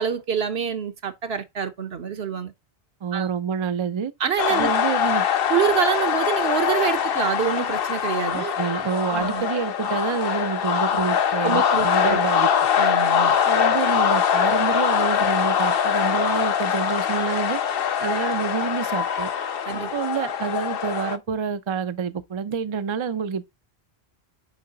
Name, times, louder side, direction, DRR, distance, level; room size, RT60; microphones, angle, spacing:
voice 1, 0.0-2.5 3.1-3.3 4.2-4.7 5.5-8.5 9.1-9.4 11.4-12.3 12.8-13.4 19.7-19.9, right 8 dB, 70° right, 1.2 m, -26 dB
voice 2, 3.0-4.1 4.5-5.3 8.3-12.5 13.5-17.6 18.0-19.3 19.9-23.4, right 6 dB, 40° right, 0.4 m, -27 dB
sound 1, 4.4-21.2, left 8 dB, 65° left, 0.9 m, -23 dB
7.2 x 4.7 x 3.8 m
omnidirectional pair, 1.1 m